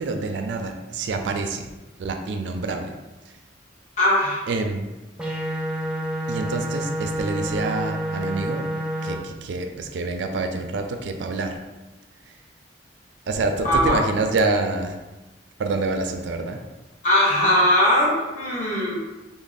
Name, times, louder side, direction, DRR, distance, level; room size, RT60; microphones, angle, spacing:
voice 1, 0.0-1.7 2.0-2.9 4.5-4.9 6.3-8.7 9.0-11.6 12.3-12.4 13.3-15.0 15.6-16.6, right 3 dB, 70° right, 5 dB, 0.4 m, -27 dB
voice 2, 4.0-4.4 13.6-14.0 17.0-18.9, left 1 dB, 40° left, -6 dB, 1.1 m, -20 dB
sound 1, 5.2-9.2, equal, 5° right, 0.4 m, -28 dB
3.3 x 2.0 x 3.9 m, 1.1 s
head